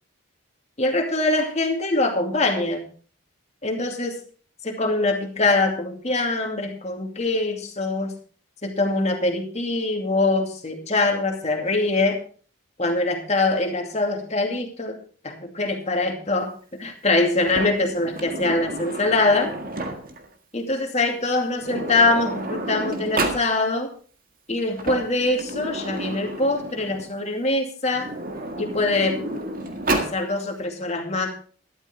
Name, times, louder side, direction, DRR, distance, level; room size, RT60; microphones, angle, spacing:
voice 1, 0.8-2.8 3.6-4.1 4.6-8.1 8.6-12.2 12.8-15.0 15.2-16.5 16.8-19.5 20.5-23.9 24.5-28.1 28.6-29.4 29.9-31.4, left 2 dB, 30° left, 3 dB, 2.4 m, -23 dB
Sliding door, 17.4-20.3 21.2-21.3 21.6-23.5 24.6-27.1 27.9-30.2, right 2 dB, 45° right, 1.8 m, -30 dB
13.0 x 12.5 x 4.4 m, 0.42 s
head